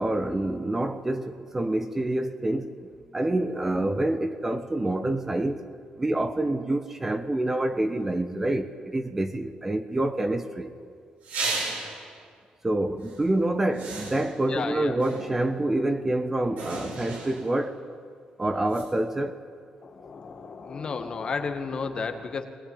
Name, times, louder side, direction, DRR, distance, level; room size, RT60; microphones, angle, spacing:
voice 1, 0.0-2.8 3.1-5.6 6.0-10.7 12.6-17.8 18.4-19.4, right 1 dB, 15° right, 1.2 m, -27 dB
sound 1, 11.2-12.1 13.0-13.2 13.7-14.5 15.0-15.6 16.6-17.6 18.7-18.8, right 3 dB, 90° right, 6.9 m, -34 dB
voice 2, 14.5-15.0 18.5-18.7 19.8-22.5, left 5 dB, 40° left, 2.1 m, -33 dB
22.0 x 19.0 x 9.5 m
cardioid pair, 120°, 2 cm